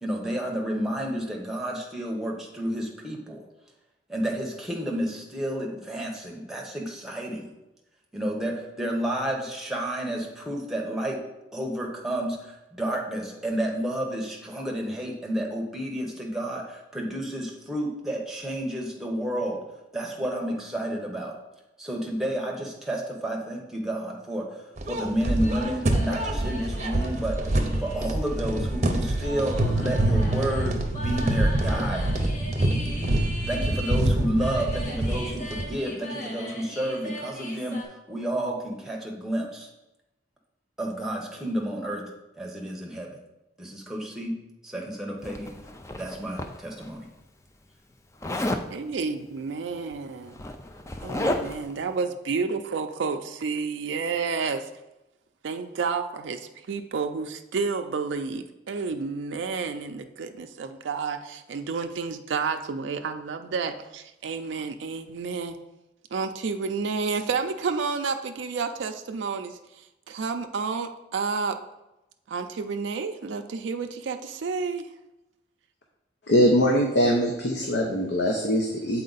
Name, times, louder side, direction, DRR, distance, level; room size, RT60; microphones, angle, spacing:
voice 1, 0.0-3.4 4.1-7.5 8.1-11.2 11.5-19.6 19.9-21.4 21.8-24.6 24.9-32.3 33.5-39.7 40.8-42.0 42.3-43.2 43.6-45.5 46.0-47.1, right 1 dB, ahead, -1 dB, 0.9 m, -31 dB
sound 1, 24.8-35.7, right 1 dB, 40° right, 0.6 m, -26 dB
sound 2, 25.4-37.8, equal, 45° left, 1.2 m, -39 dB
Zipper (clothing), 45.2-46.9 48.2-48.7 49.8-49.9 50.2-51.7, left 1 dB, 15° left, 0.3 m, -31 dB
voice 2, 48.7-50.3 51.0-54.7 55.4-65.6 66.1-71.6 72.3-74.9, right 5 dB, 80° right, 6 dB, 0.4 m, -30 dB
voice 3, 76.3-79.0, equal, 65° left, 0 dB, 0.7 m, -22 dB
7.4 x 4.3 x 4.0 m, 0.96 s
head